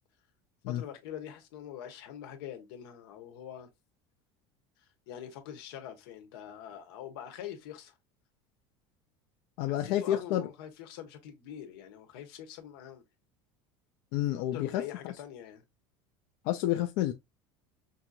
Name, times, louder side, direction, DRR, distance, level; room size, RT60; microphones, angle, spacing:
voice 1, 0.7-3.7 5.1-7.9 9.7-13.0 14.5-15.6, left 10 dB, 85° left, 1.3 m, -44 dB
voice 2, 9.6-10.5 14.1-14.8 16.4-17.1, left 13 dB, 60° left, 0.6 m, -29 dB
5.8 x 2.9 x 2.4 m
cardioid pair, 160°, 12 cm